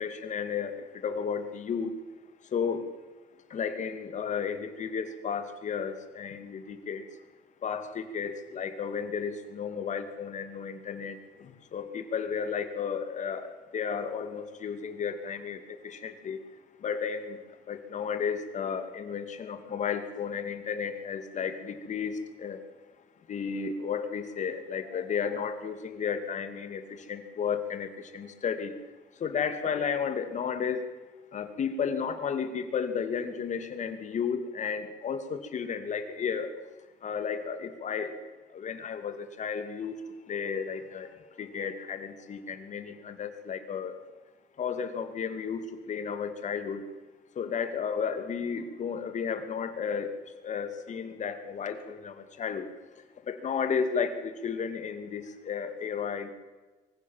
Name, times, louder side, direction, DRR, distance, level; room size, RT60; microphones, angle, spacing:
voice 1, 0.0-1.9 2.5-2.9 3.5-7.0 7.6-16.4 16.8-17.4 17.7-22.6 23.3-28.7 29.2-30.8 31.3-36.5 37.0-38.1 38.5-40.0 40.3-41.1 41.4-43.9 44.6-45.6 45.9-46.8 47.4-50.1 50.4-52.7 53.3-56.3, left 6 dB, 45° left, 9 dB, 2.6 m, -33 dB
24.0 x 15.5 x 7.5 m, 1.2 s
cardioid pair, 110°, 17 cm